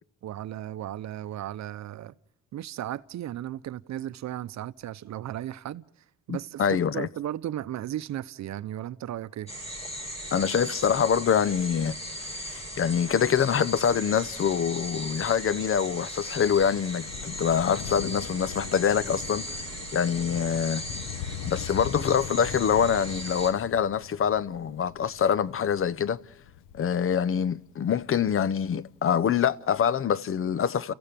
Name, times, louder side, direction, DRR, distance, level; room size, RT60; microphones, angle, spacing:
voice 1, 0.2-2.1 2.5-5.8 6.3-9.5, right 12 dB, 65° right, 0.7 m, -35 dB
voice 2, 6.3-7.1 10.3-12.0 12.3-19.4 19.9-20.8 21.5-26.2 26.7-30.9, left 8 dB, 45° left, 0.8 m, -25 dB
sound 1, 9.5-23.5, equal, 20° left, 7.0 m, -38 dB
Thunder, 16.0-28.9 29.8-29.9, left 9 dB, 85° left, 1.1 m, -41 dB
29.5 x 15.0 x 9.0 m
cardioid pair, 90°, 30 cm